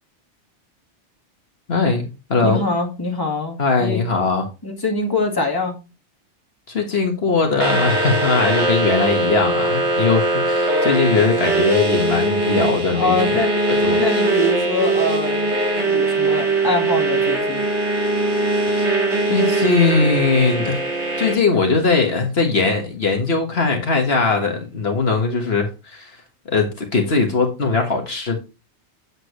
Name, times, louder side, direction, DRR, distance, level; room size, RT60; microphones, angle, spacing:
voice 1, 1.7-2.6 3.6-4.4 6.7-13.2 13.8-14.0 18.7-19.0 19.3-20.8 21.2-26.1 26.5-28.4, left 4 dB, 60° left, 1.7 m, -20 dB
voice 2, 2.4-4.0 4.6-5.8 12.9-13.5 14.0-17.6, left 2 dB, 20° left, 1.9 m, -24 dB
sound 1, 7.6-21.3, right 2 dB, 75° right, 2.3 m, -20 dB
8.0 x 7.6 x 3.1 m
omnidirectional pair, 1.2 m